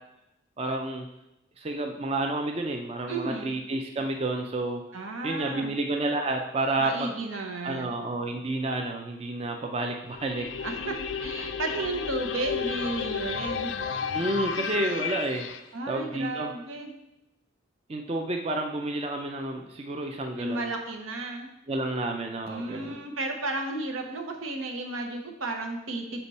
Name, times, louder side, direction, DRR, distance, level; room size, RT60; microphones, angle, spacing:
voice 1, 0.6-1.1 1.6-4.8 5.2-7.1 7.6-10.5 14.1-15.5 15.9-16.5 17.9-20.7 21.7-23.0, right 2 dB, 30° right, 3 dB, 0.5 m, -30 dB
voice 2, 3.1-3.5 4.9-5.8 6.8-8.0 10.6-10.9 11.2-13.7 15.7-16.9 20.4-21.5 22.5-26.2, right 2 dB, 85° right, 3 dB, 1.0 m, -33 dB
sound 1, 10.1-15.6, left 6 dB, 65° left, 0.3 m, -32 dB
7.0 x 4.3 x 4.1 m, 0.89 s
head